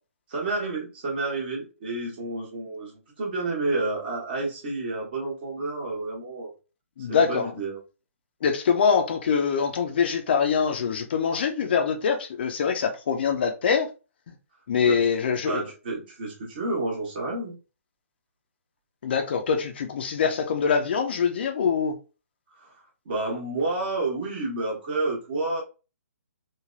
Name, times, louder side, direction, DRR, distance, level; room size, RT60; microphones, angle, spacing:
voice 1, 0.3-6.5 7.1-7.8 14.8-15.1 15.4-17.6 22.6-22.7 23.0-25.6, right 2 dB, 40° right, 1.1 m, -30 dB
voice 2, 7.0-7.5 8.4-13.9 14.7-15.6 19.0-22.0, left 6 dB, 45° left, 0.5 m, -24 dB
3.2 x 2.2 x 2.4 m
figure-of-eight pair, 135°, 8 cm